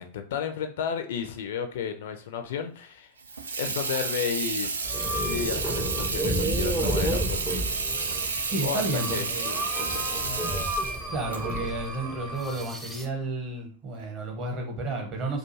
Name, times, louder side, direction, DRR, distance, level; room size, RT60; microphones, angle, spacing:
voice 1, 0.0-3.1 3.6-4.7 5.2-7.8 8.2-10.5, left 7 dB, 55° left, 7 dB, 0.4 m, -33 dB
Water tap faucet / Sink (filling or washing), 3.2-12.8, right 4 dB, 70° right, 0.3 m, -31 dB
sound 1, 4.8-13.1, right 1 dB, 5° right, 0.4 m, -31 dB
voice 2, 8.5-9.5 11.1-15.4, right 2 dB, 35° right, 2 dB, 0.8 m, -32 dB
2.4 x 2.3 x 3.0 m, 0.41 s
figure-of-eight pair, 90°, 0 cm